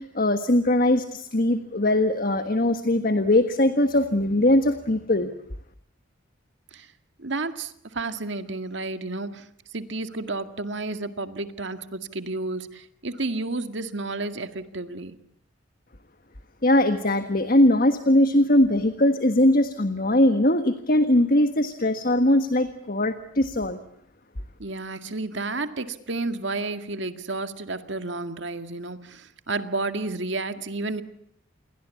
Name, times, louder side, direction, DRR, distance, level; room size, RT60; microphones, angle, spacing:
voice 1, 0.0-5.3 16.6-23.8, left 1 dB, 45° left, 1.5 m, -21 dB
voice 2, 7.2-9.5 9.7-15.2 24.6-31.0, right 3 dB, 65° right, 2.0 m, -31 dB
29.0 x 22.5 x 8.5 m
head